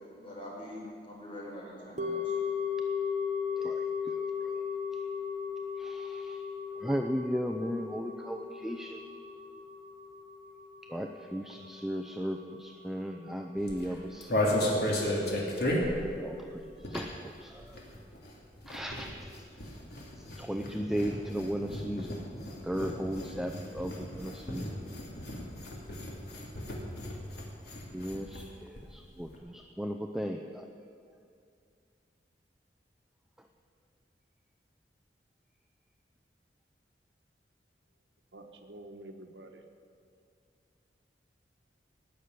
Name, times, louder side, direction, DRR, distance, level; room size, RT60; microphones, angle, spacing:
voice 1, 0.2-2.4, left 1 dB, 30° left, -4 dB, 4.7 m, -44 dB
sound 1, 2.0-12.3 12.5-12.6, left 6 dB, 45° right, 1.2 m, -36 dB
voice 2, 5.8-6.4 6.8-9.0 10.9-14.3 14.6-14.7 16.2-17.1 17.4-17.5 18.7-19.1 20.4-22.2 22.7-24.7 27.9-28.4 28.9-30.4, equal, ahead, 4 dB, 0.5 m, -35 dB
sound 2, 13.6-17.3 17.6-28.5 28.8-28.9 29.1-29.4, left 1 dB, 65° left, 2.7 m, -34 dB
voice 3, 38.3-39.6, right 1 dB, 85° right, 6 dB, 1.3 m, -48 dB
18.5 x 6.7 x 9.4 m, 2.4 s
head